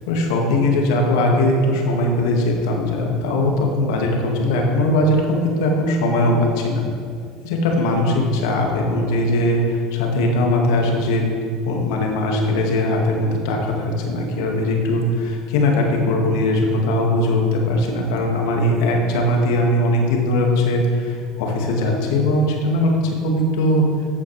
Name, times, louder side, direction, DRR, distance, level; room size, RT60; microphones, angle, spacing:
voice 1, 0.1-6.8 7.4-11.2 11.7-22.9 23.2-23.9, left 1 dB, 70° left, 0 dB, 1.9 m, -20 dB
14.5 x 8.4 x 3.3 m, 2.2 s
hypercardioid pair, 75°, 2 cm